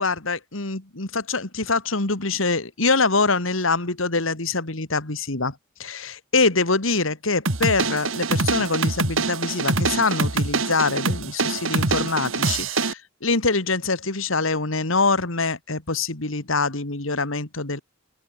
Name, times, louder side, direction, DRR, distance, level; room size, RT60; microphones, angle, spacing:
voice 1, 0.0-5.5 5.8-17.8, left 3 dB, 85° left, 2.7 m, -24 dB
sound 1, 7.5-12.9, right 3 dB, 85° right, 2.5 m, -24 dB
open air
head